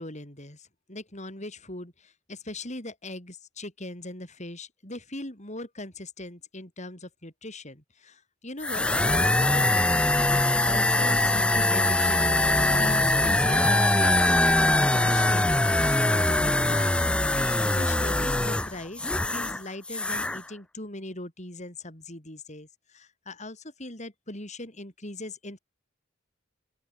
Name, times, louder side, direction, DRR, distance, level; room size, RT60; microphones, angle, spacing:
voice 1, 0.0-17.1 17.6-25.6, left 1 dB, 35° left, 7.9 m, -40 dB
sound 1, 8.6-19.6 19.9-20.4, left 1 dB, 5° left, 0.3 m, -23 dB
open air
head